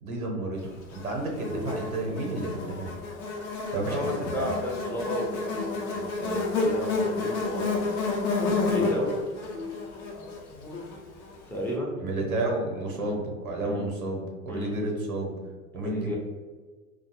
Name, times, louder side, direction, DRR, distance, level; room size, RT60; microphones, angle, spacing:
voice 1, 0.0-2.9 3.7-4.5 12.0-15.4 15.7-16.2, right 2 dB, 90° right, 0 dB, 0.7 m, -31 dB
Buzz, 0.9-11.3, left 3 dB, 60° left, 0.7 m, -30 dB
sound 1, 1.5-2.5 5.5-6.5 9.5-10.5, left 4 dB, 30° left, 0.7 m, -42 dB
voice 2, 3.9-8.1 8.4-9.1 11.5-12.0 12.9-13.2 13.6-13.9 14.5-14.7 15.7-16.2, equal, 5° left, -3 dB, 0.3 m, -33 dB
2.3 x 2.1 x 2.8 m, 1.4 s
figure-of-eight pair, 80°, 41 cm